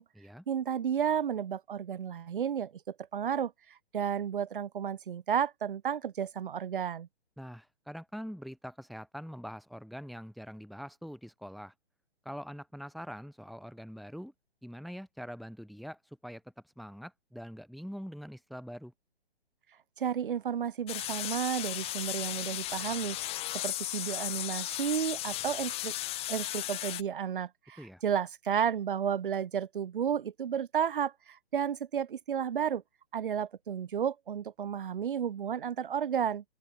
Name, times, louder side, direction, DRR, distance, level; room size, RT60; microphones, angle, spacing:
voice 1, 0.5-7.1 20.0-23.2 23.5-25.9 26.3-32.8 33.1-36.4, right 8 dB, 55° right, 4.6 m, -32 dB
voice 2, 7.4-11.7 12.2-14.3 14.6-16.4 16.8-18.9 27.8-28.0, equal, ahead, 7.3 m, -44 dB
sound 1, 20.9-27.0, left 16 dB, 20° left, 2.9 m, -35 dB
open air
figure-of-eight pair, 135°, 32 cm